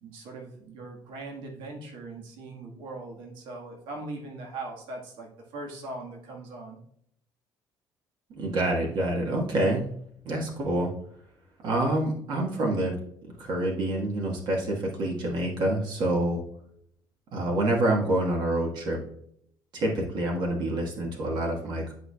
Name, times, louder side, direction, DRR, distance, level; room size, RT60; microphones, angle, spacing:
voice 1, 0.0-6.8, right 2 dB, 85° right, 0 dB, 1.6 m, -40 dB
voice 2, 8.3-9.8 10.2-10.9 11.6-12.9 13.4-16.4 17.3-19.0 19.7-21.9, right 1 dB, 65° right, -1 dB, 1.5 m, -27 dB
11.0 x 4.7 x 2.3 m, 0.68 s
cardioid pair, 115°, 8 cm